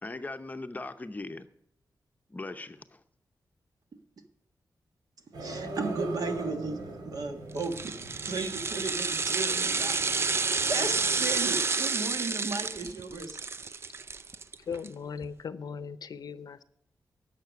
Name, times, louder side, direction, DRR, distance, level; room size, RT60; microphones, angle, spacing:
voice 1, 0.0-1.5 2.3-3.0, left 2 dB, 25° left, 8 dB, 0.7 m, -39 dB
sound 1, 5.3-11.6, right 2 dB, 85° right, 2.1 m, -41 dB
voice 2, 5.4-7.9 8.2-13.4, right 3 dB, 65° right, 5 dB, 1.6 m, -35 dB
sound 2, 7.6-14.9 15.2-15.3, right 4 dB, 35° right, 0.4 m, -30 dB
voice 3, 14.7-16.6, left 6 dB, 70° left, 14 dB, 0.6 m, -38 dB
12.0 x 6.7 x 9.4 m, 0.74 s
wide cardioid pair, 140°, 7 cm